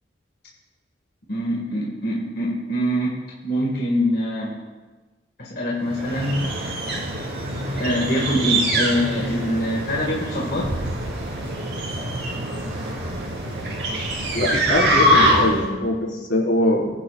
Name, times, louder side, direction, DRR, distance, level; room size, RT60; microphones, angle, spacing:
voice 1, 1.3-3.2 3.4-4.5 5.4-6.5 7.8-10.7 15.0-15.2, equal, 55° left, -4 dB, 1.9 m, -24 dB
sound 1, 5.9-15.7, equal, 65° right, 3.0 m, -24 dB
voice 2, 14.3-16.9, left 1 dB, 90° left, -4 dB, 4.6 m, -22 dB
22.0 x 10.0 x 2.5 m, 1.3 s
head